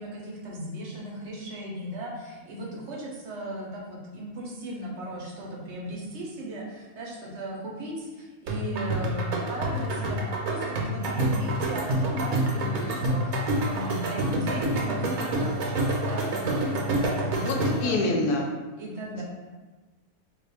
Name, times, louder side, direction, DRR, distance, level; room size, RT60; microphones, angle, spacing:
voice 1, 0.0-18.2 18.8-19.2, right 1 dB, 60° right, -3 dB, 0.8 m, -36 dB
sound 1, 8.5-18.0, right 1 dB, 80° right, 1.1 m, -27 dB
voice 2, 17.3-18.5 19.1-19.2, left 2 dB, 80° left, 0 dB, 1.0 m, -27 dB
2.6 x 2.4 x 4.1 m, 1.3 s
omnidirectional pair, 1.6 m